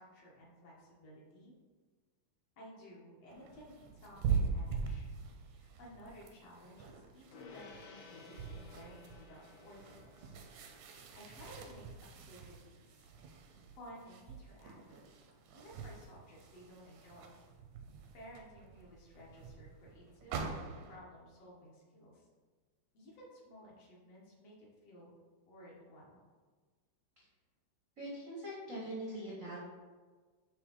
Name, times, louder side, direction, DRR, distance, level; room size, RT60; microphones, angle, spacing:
voice 1, 0.0-1.5 2.6-5.1 5.5-10.4 11.1-13.1 13.7-15.0 15.5-17.3 18.1-22.3 22.9-25.1 25.5-26.2, equal, 60° left, -5 dB, 2.3 m, -55 dB
sound 1, 3.3-21.0, right 6 dB, 80° right, 2.0 m, -43 dB
Gong, 7.3-17.0, left 4 dB, 80° left, 2.3 m, -59 dB
voice 2, 28.0-29.6, right 1 dB, 60° right, -6 dB, 0.8 m, -42 dB
9.6 x 3.2 x 3.9 m, 1.4 s
omnidirectional pair, 3.3 m